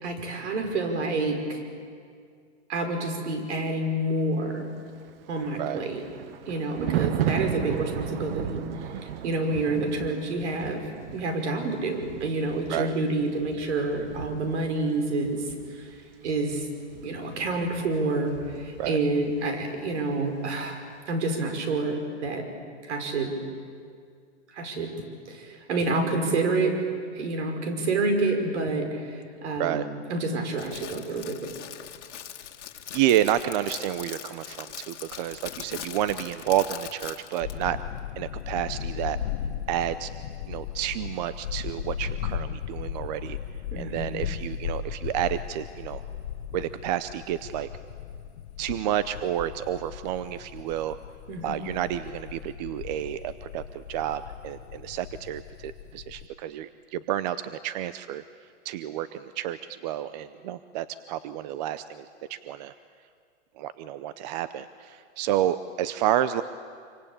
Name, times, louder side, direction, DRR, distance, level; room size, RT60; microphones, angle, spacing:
voice 1, 0.0-1.6 2.7-4.7 5.3-6.0 6.5-10.8 11.1-15.4 15.7-15.9 16.2-16.7 17.0-20.8 21.1-22.5 22.8-23.4 24.5-24.9 25.3-26.8 27.2-31.5 43.7-44.2 51.3-51.6, right 2 dB, 70° right, 5 dB, 5.4 m, -28 dB
Thunder, 5.0-19.6 19.9-20.1, right 11 dB, 50° right, 1.2 m, -35 dB
Crackle, 30.5-37.6, left 10 dB, 80° left, 2.2 m, -41 dB
voice 2, 32.9-37.8 38.2-39.2 39.7-40.1 40.5-43.4 43.8-46.0 46.5-47.7 48.6-51.0 51.4-58.2 58.6-62.7 63.6-66.4, right 12 dB, 35° right, 14 dB, 0.7 m, -30 dB
sound 1, 37.4-56.3, left 9 dB, 65° left, 1.2 m, -37 dB
26.5 x 25.0 x 8.8 m, 2.2 s
hypercardioid pair, 150°, 35 cm